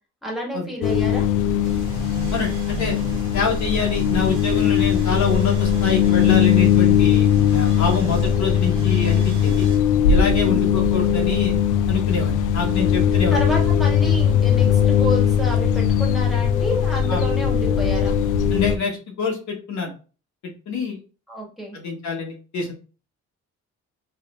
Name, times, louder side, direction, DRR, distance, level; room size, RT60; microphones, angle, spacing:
voice 1, 0.2-1.3 10.4-10.7 12.7-12.8 13.3-18.2 21.3-21.8, equal, ahead, -3 dB, 2.0 m, -30 dB
sound 1, 0.8-18.8, left 8 dB, 85° left, 0.5 m, -19 dB
sound 2, 1.6-9.8, right 4 dB, 80° right, 1.5 m, -37 dB
voice 2, 2.3-3.0 3.3-9.7 10.1-11.6 11.9-13.4 17.1-17.2 18.5-19.9 20.7-21.0 21.7-22.7, left 4 dB, 65° left, 0 dB, 1.5 m, -26 dB
4.1 x 3.2 x 2.6 m, 0.35 s
cardioid pair, 90°, 30 cm